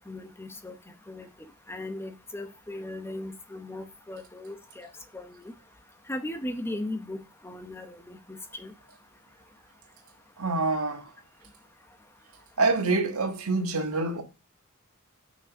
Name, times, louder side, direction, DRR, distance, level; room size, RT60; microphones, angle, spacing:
voice 1, 0.1-0.7 1.1-1.3 1.7-4.9 5.1-5.5 6.1-8.7, left 1 dB, 10° left, 0.8 m, -37 dB
voice 2, 10.4-11.1 12.6-14.2, right 3 dB, 80° right, 1.5 m, -26 dB
6.1 x 5.4 x 5.0 m
head